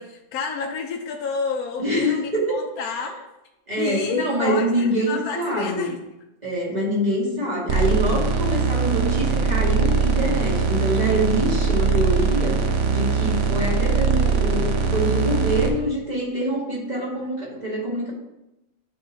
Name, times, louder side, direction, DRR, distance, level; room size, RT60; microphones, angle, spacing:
voice 1, 0.0-3.2 3.8-6.0 15.0-15.4, left 5 dB, 80° left, 2 dB, 1.1 m, -30 dB
voice 2, 1.8-2.6 3.7-5.9 6.4-12.6 12.9-18.1, equal, 30° right, -5 dB, 2.1 m, -25 dB
sound 1, 7.7-15.7, right 5 dB, 60° right, 1.1 m, -21 dB
10.5 x 4.8 x 2.7 m, 0.92 s
omnidirectional pair, 1.5 m